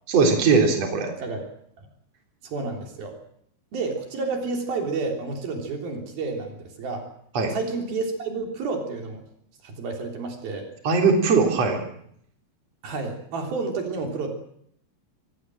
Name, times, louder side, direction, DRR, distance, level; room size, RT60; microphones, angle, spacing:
voice 1, 0.1-1.1 7.3-7.5 10.8-11.8, right 4 dB, 45° right, 3 dB, 4.5 m, -20 dB
voice 2, 2.4-3.2 3.7-7.1 7.4-9.2 9.6-10.7 12.8-14.3, right 3 dB, 75° right, 3 dB, 5.2 m, -30 dB
25.5 x 18.5 x 7.7 m, 0.68 s
omnidirectional pair, 4.3 m